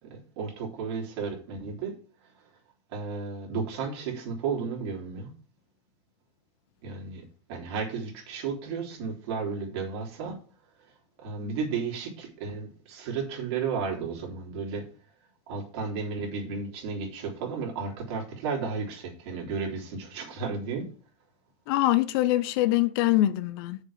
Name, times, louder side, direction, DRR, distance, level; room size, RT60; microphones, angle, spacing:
voice 1, 0.0-1.9 2.9-5.3 6.8-7.2 7.5-10.4 11.2-14.9 15.5-20.9, right 5 dB, 55° right, 3.5 m, -33 dB
voice 2, 21.7-23.8, left 15 dB, 50° left, 0.6 m, -24 dB
6.8 x 5.4 x 7.3 m
supercardioid pair, 165°, 16 cm